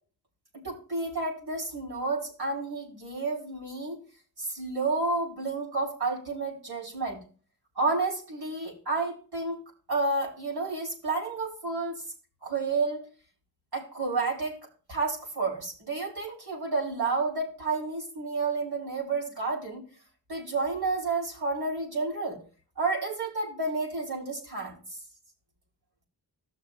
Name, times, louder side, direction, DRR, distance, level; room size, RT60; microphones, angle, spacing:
voice 1, 0.6-4.0 4.4-7.2 7.7-9.6 9.9-12.0 12.4-13.0 13.7-14.6 14.9-19.8 20.3-22.4 22.8-24.8, right 3 dB, 60° right, -3 dB, 4.9 m, -30 dB
16.0 x 6.4 x 2.5 m, 0.39 s
wide cardioid pair, 70°, 42 cm